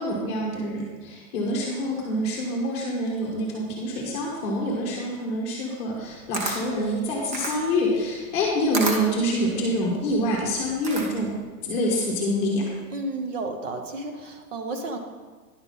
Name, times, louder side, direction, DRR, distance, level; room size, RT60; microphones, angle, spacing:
voice 1, 0.0-11.4 11.6-12.7, equal, 15° left, -3 dB, 1.1 m, -26 dB
Camera, 5.9-11.4, right 2 dB, 30° right, 0.7 m, -33 dB
voice 2, 12.9-15.0, right 2 dB, 50° right, 5 dB, 1.0 m, -32 dB
10.5 x 5.9 x 5.5 m, 1.4 s
hypercardioid pair, 175°, 48 cm